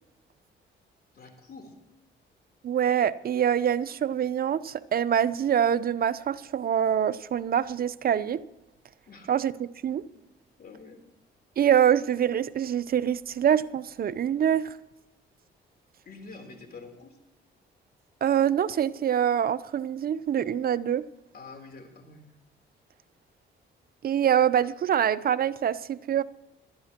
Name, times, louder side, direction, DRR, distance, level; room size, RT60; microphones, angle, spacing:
voice 1, 1.1-1.7 9.1-9.3 10.1-10.2 10.6-11.0 16.1-17.2 21.3-22.3, left 3 dB, 50° left, 3.5 m, -46 dB
voice 2, 2.6-8.4 9.3-10.0 11.6-14.7 18.2-21.1 24.0-26.2, right 9 dB, 50° right, 0.7 m, -25 dB
22.0 x 12.0 x 3.0 m
cardioid pair, 90°, 20 cm